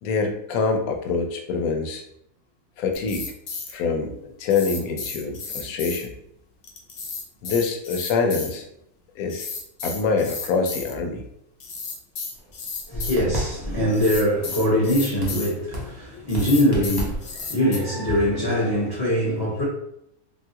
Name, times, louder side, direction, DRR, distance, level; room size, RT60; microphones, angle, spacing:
voice 1, 0.0-2.0 2.8-3.3 3.7-6.1 7.4-8.6 9.1-9.5 9.8-11.2, left 4 dB, 80° left, 1.0 m, -25 dB
sound 1, 2.9-3.7 4.5-6.0 6.6-8.5 9.3-10.9 11.6-13.2 13.9-15.5 16.3-17.8, left 4 dB, 60° left, 0.7 m, -33 dB
sound 2, 12.3-19.0, equal, 30° right, 0.4 m, -35 dB
voice 2, 12.9-19.6, equal, 20° left, 0.7 m, -22 dB
3.4 x 2.3 x 2.7 m
omnidirectional pair, 1.5 m